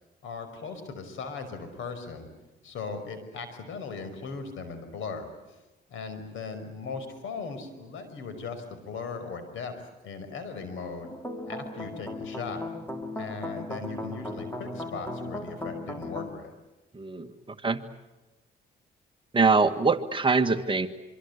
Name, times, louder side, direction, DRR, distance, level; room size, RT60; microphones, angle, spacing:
voice 1, 0.2-2.3 2.6-5.6 5.9-9.7 10.0-11.1 11.5-12.6 13.2-16.5, left 4 dB, 80° left, 9 dB, 5.4 m, -38 dB
sound 1, 11.0-16.3, left 1 dB, 10° left, 4.0 m, -37 dB
voice 2, 16.9-17.8 19.3-20.9, right 4 dB, 25° right, 7 dB, 1.7 m, -24 dB
26.0 x 25.0 x 8.3 m, 1.0 s
cardioid pair, 90°, 20 cm